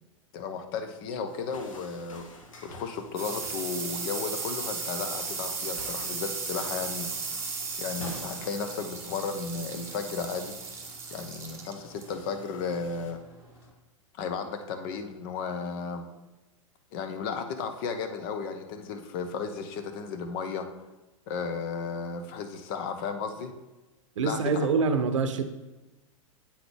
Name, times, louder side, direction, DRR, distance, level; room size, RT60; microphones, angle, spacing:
voice 1, 0.3-2.3 2.6-7.1 7.8-10.6 11.1-13.2 14.2-16.1 16.9-20.7 21.3-23.5 24.2-24.7, left 5 dB, 45° left, 8 dB, 0.7 m, -34 dB
sound 1, 1.3-3.8 4.1-4.6 5.1-5.3 5.6-13.1, left 2 dB, 75° left, 1.0 m, -50 dB
sound 2, 2.4-13.7, right 4 dB, 15° right, 1.0 m, -36 dB
voice 2, 24.2-25.5, right 4 dB, 65° right, 8 dB, 0.6 m, -25 dB
8.4 x 3.9 x 3.3 m, 1.1 s
figure-of-eight pair, 100°, 17 cm